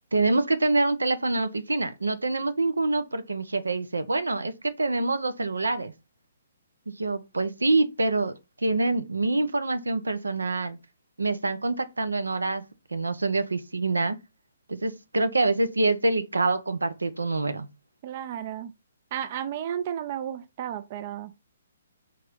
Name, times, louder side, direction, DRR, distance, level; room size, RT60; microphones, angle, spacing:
voice 1, 0.1-5.9 6.9-10.8 11.2-12.6 12.9-14.2 14.7-17.7, right 2 dB, 85° right, 0.6 m, -26 dB
voice 2, 18.0-18.7 19.1-21.3, right 10 dB, 45° right, 0.4 m, -33 dB
3.7 x 3.0 x 4.5 m
figure-of-eight pair, 135°, 0 cm